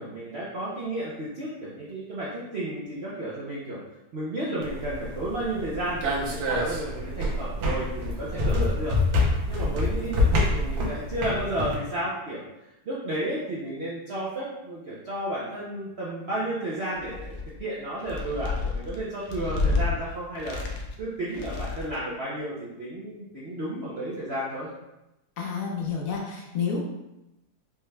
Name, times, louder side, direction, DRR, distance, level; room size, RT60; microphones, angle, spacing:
voice 1, 0.0-3.8 4.1-9.0 9.5-12.4 12.8-24.7, right 1 dB, 70° right, -7 dB, 0.6 m, -32 dB
sound 1, 4.6-11.7, left 2 dB, 85° right, 1.5 m, -26 dB
sound 2, 16.9-17.6 18.0-19.9 20.4-21.0 21.3-22.0, left 3 dB, 80° left, 1.3 m, -30 dB
voice 2, 25.4-26.8, left 6 dB, 65° left, -1 dB, 0.8 m, -29 dB
5.0 x 2.2 x 3.2 m, 0.93 s
omnidirectional pair, 2.0 m